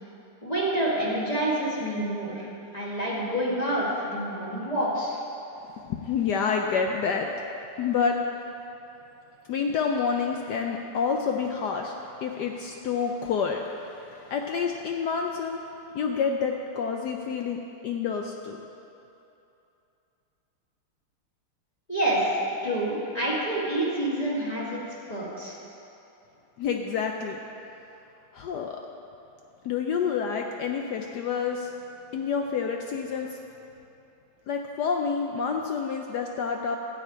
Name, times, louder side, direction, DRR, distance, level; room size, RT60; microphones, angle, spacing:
voice 1, 0.4-2.5 2.7-5.2 21.9-24.8 25.1-25.6, right 1 dB, 20° left, -7 dB, 1.8 m, -27 dB
voice 2, 5.8-7.3 7.8-8.2 9.5-11.9 12.2-15.6 15.9-18.6 26.6-27.4 28.3-28.8 29.6-31.7 32.1-33.4 34.5-36.8, left 6 dB, 75° left, 2 dB, 0.9 m, -28 dB
12.5 x 5.0 x 8.7 m, 2.8 s
omnidirectional pair, 2.4 m